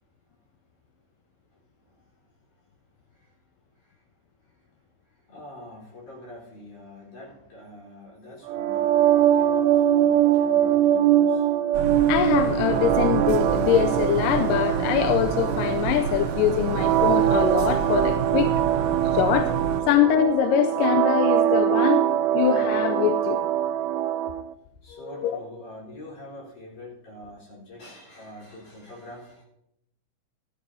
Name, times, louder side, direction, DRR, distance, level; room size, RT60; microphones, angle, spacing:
voice 1, 1.5-2.5 3.1-3.4 3.7-4.1 4.4-4.7 5.0-11.5 24.8-29.4, left 1 dB, 55° left, -4 dB, 5.7 m, -45 dB
sound 1, 8.5-24.4, right 11 dB, 90° right, 2.5 m, -22 dB
sound 2, 11.7-19.8, right 5 dB, 70° right, 1.8 m, -30 dB
voice 2, 12.1-18.5 19.1-19.5 19.9-22.1 22.3-23.4 25.2-25.4, left 10 dB, 80° left, 8 dB, 2.1 m, -23 dB
15.5 x 13.0 x 2.8 m, 0.79 s
omnidirectional pair, 4.2 m